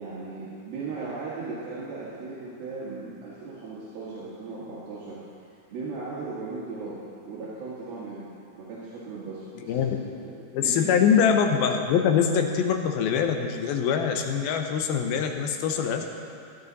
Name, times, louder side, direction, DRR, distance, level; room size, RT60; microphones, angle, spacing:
voice 1, 0.0-5.2 5.7-8.3 8.6-9.8 10.2-10.4 10.6-11.0, right 3 dB, 75° right, -8 dB, 3.6 m, -37 dB
voice 2, 9.6-10.0 10.5-16.1, left 7 dB, 80° left, 5 dB, 2.6 m, -23 dB
14.5 x 12.0 x 4.1 m, 2.4 s
omnidirectional pair, 4.3 m